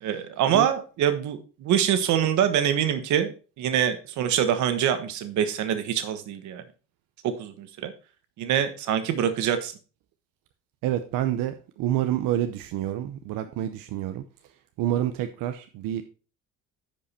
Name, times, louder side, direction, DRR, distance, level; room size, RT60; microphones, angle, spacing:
voice 1, 0.0-6.6 7.2-7.9 8.4-9.7, right 9 dB, 60° right, 10 dB, 1.3 m, -25 dB
voice 2, 10.8-14.2 14.8-16.0, right 12 dB, 85° right, 8 dB, 0.8 m, -28 dB
10.5 x 5.3 x 4.2 m, 0.35 s
cardioid pair, 180°, 32 cm